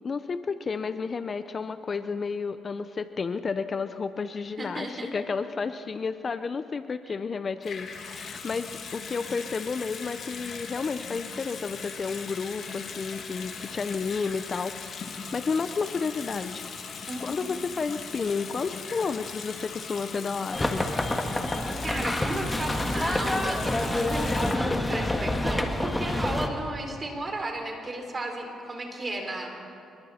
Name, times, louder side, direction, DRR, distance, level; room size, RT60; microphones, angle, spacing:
voice 1, 0.0-15.0 15.3-16.6 17.2-20.9, left 5 dB, 40° left, 11 dB, 0.6 m, -31 dB
voice 2, 4.6-5.1 17.1-17.3 21.8-29.5, right 2 dB, 30° right, 2 dB, 4.3 m, -34 dB
Water tap faucet / Sink (filling or washing) / Bathtub (filling or washing), 7.6-24.6, left 5 dB, 60° left, 2.4 m, -39 dB
sound 1, 20.5-26.5, left 1 dB, 15° left, 1.7 m, -27 dB
27.0 x 22.0 x 4.4 m, 2.5 s
cardioid pair, 90°, 0 cm